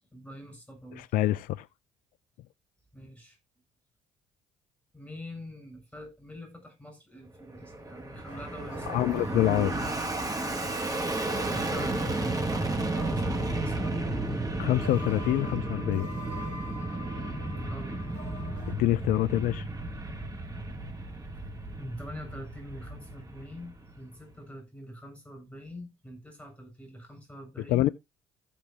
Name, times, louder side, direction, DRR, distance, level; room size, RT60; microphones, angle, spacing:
voice 1, 0.0-1.0 2.9-3.4 4.9-9.4 11.4-14.2 17.6-18.0 21.8-27.9, equal, 5° left, 7.9 m, -45 dB
voice 2, 1.0-1.7 8.9-9.9 14.6-16.1 18.7-19.7 27.7-27.9, left 15 dB, 60° left, 0.4 m, -26 dB
Fixed-wing aircraft airplane, 7.4-24.0, right 2 dB, 25° right, 2.6 m, -33 dB
sound 1, 8.3-18.7, left 1 dB, 75° right, 3.5 m, -46 dB
15.0 x 6.9 x 2.9 m
hypercardioid pair, 55°, 16 cm